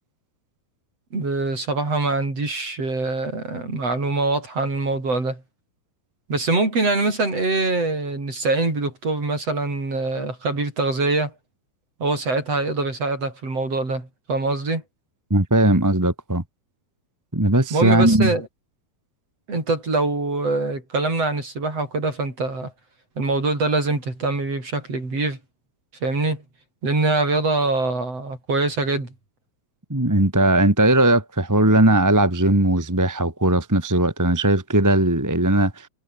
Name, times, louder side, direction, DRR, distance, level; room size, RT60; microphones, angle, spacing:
voice 1, 1.1-5.4 6.3-11.3 12.0-14.8 17.7-18.5 19.5-22.7 23.2-25.4 26.0-26.4 26.8-29.1, right 3 dB, 40° right, 8.6 m, -24 dB
voice 2, 15.3-16.4 17.3-18.3 29.9-35.9, right 1 dB, 10° right, 1.1 m, -18 dB
omnidirectional pair, 4.3 m